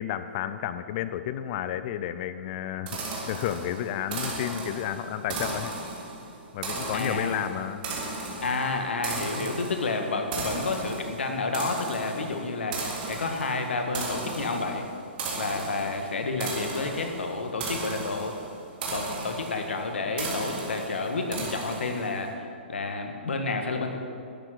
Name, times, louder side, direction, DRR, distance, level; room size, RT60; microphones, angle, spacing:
voice 1, 0.0-3.0 3.3-5.7 6.5-7.9, left 11 dB, 45° left, 12 dB, 0.6 m, -31 dB
sound 1, 2.9-22.2, right 3 dB, 50° right, 3.1 m, -36 dB
voice 2, 6.9-7.5 8.4-14.8 15.3-18.3 18.9-24.0, left 3 dB, 80° left, 4 dB, 1.7 m, -30 dB
12.0 x 7.6 x 6.5 m, 2.4 s
hypercardioid pair, 130°, 6 cm